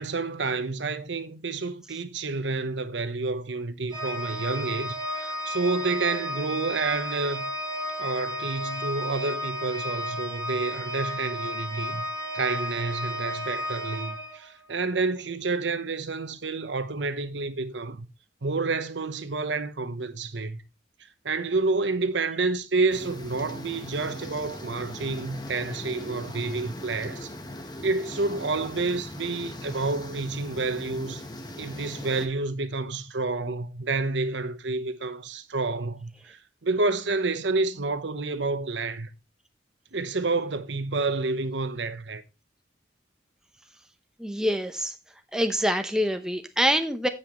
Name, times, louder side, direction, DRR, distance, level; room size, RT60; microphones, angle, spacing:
voice 1, 0.0-7.5 8.0-12.0 12.3-18.1 18.4-20.6 21.2-27.3 27.8-31.3 31.6-39.1 39.9-42.2, right 3 dB, 80° right, 1.0 m, -29 dB
Organ, 3.9-14.8, equal, 20° right, 3.9 m, -33 dB
sound 1, 22.9-32.3, left 1 dB, 20° left, 1.2 m, -40 dB
voice 2, 44.2-44.9 45.3-47.1, equal, 5° right, 0.8 m, -25 dB
16.0 x 5.7 x 3.1 m
head